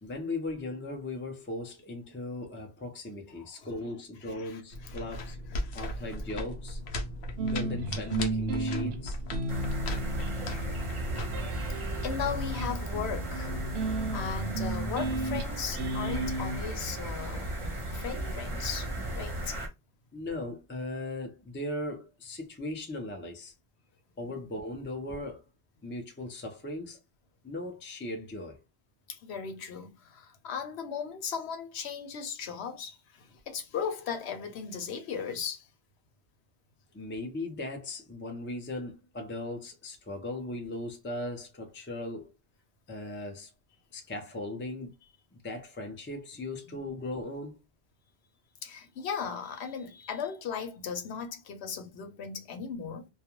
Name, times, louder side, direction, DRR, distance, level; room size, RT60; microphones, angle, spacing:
voice 1, 0.0-5.4 5.7-6.8 7.4-9.2 13.7-14.0 15.5-15.6 16.0-16.8 20.1-23.5 24.2-25.4 25.8-27.0 27.4-28.6 36.9-42.3 42.9-43.5 43.9-44.9 45.4-47.6, left 2 dB, 15° left, 0.4 m, -38 dB
voice 2, 3.4-4.0 4.3-6.1 12.0-13.6 14.1-17.5 17.9-19.6 29.1-35.7 48.6-53.1, left 7 dB, 90° left, 1.0 m, -37 dB
sound 1, 4.7-12.0, left 1 dB, 70° left, 0.8 m, -38 dB
sound 2, 7.4-16.6, right 2 dB, 80° right, 0.8 m, -34 dB
sound 3, 9.5-19.7, right 1 dB, 30° right, 0.8 m, -35 dB
2.3 x 2.2 x 2.9 m
omnidirectional pair, 1.1 m